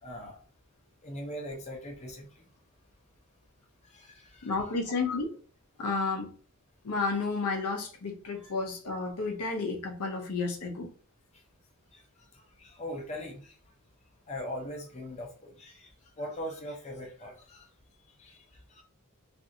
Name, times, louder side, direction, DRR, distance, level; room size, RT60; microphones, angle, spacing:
voice 1, 0.0-0.4 1.0-2.5 3.9-4.7 8.3-8.5 11.9-12.0 12.3-13.5 14.3-15.9 16.2-17.6 18.2-18.4 18.7-18.8, equal, 30° left, 0 dB, 0.6 m, -41 dB
voice 2, 4.4-5.4 5.8-6.3 6.8-10.9, left 4 dB, 75° left, 1 dB, 0.6 m, -31 dB
2.6 x 2.5 x 2.6 m, 0.41 s
head